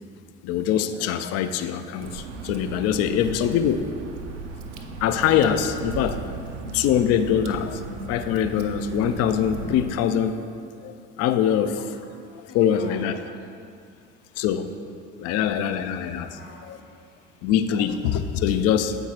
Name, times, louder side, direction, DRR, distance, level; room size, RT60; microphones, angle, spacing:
voice 1, 0.4-3.9 5.0-6.2 6.7-7.8 8.1-10.4 10.8-12.0 12.5-13.2 14.4-14.7 15.2-16.8 17.4-19.0, left 9 dB, 45° left, 10 dB, 0.4 m, -23 dB
Water / Drip, 2.0-9.9, right 3 dB, 80° right, 0.5 m, -36 dB
voice 2, 12.3-13.1 13.8-14.4 15.2-15.3 16.2-17.5, left 3 dB, 85° left, -1 dB, 0.8 m, -47 dB
7.6 x 4.5 x 2.9 m, 2.4 s
figure-of-eight pair, 55°, 35 cm